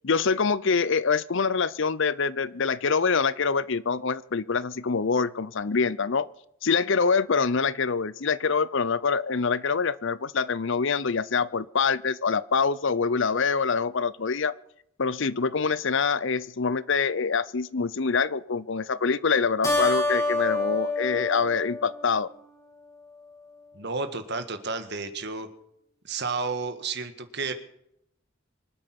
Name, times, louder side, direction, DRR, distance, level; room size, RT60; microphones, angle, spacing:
voice 1, 0.0-6.3 6.6-14.5 15.0-22.3, left 5 dB, 60° left, 18 dB, 0.7 m, -25 dB
Keyboard (musical), 19.6-22.5, left 2 dB, 15° left, 3.4 m, -27 dB
voice 2, 23.7-25.5 26.0-27.5, right 4 dB, 55° right, 9 dB, 1.7 m, -31 dB
25.0 x 9.1 x 6.0 m, 0.75 s
head